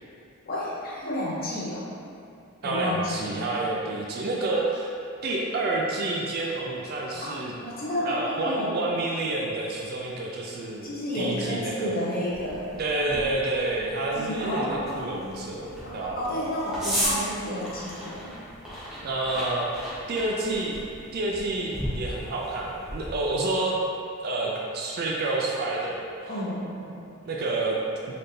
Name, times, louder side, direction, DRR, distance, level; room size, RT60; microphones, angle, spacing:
voice 1, 0.4-1.8 2.6-3.5 7.1-8.8 10.8-12.7 14.1-15.2 15.8-18.3 26.3-27.0, left 1 dB, 40° left, -7 dB, 0.8 m, -31 dB
voice 2, 2.6-4.9 5.2-7.5 8.0-12.0 12.8-16.5 19.0-20.8 21.1-23.8 24.2-26.3 27.2-27.8, right 2 dB, 45° right, -3 dB, 0.4 m, -29 dB
sound 1, 12.3-23.3, equal, 5° right, 0.8 m, -36 dB
4.1 x 2.7 x 3.3 m, 2.7 s
head